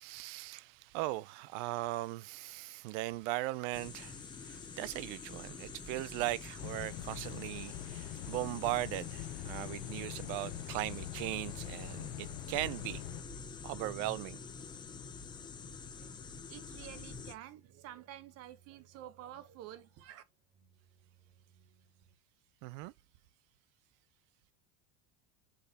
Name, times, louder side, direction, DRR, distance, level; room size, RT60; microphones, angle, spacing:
voice 1, 0.0-13.0 13.6-14.4 22.6-22.9, right 17 dB, 65° right, 0.5 m, -38 dB
sound 1, 3.7-17.3, left 5 dB, 10° left, 0.4 m, -47 dB
sound 2, 6.6-13.2, left 15 dB, 70° left, 0.8 m, -44 dB
sound 3, 15.2-22.2, right 7 dB, 80° right, 1.5 m, -68 dB
voice 2, 16.0-20.2, right 12 dB, 40° right, 0.8 m, -50 dB
6.1 x 5.5 x 2.8 m
cardioid pair, 175°, 39 cm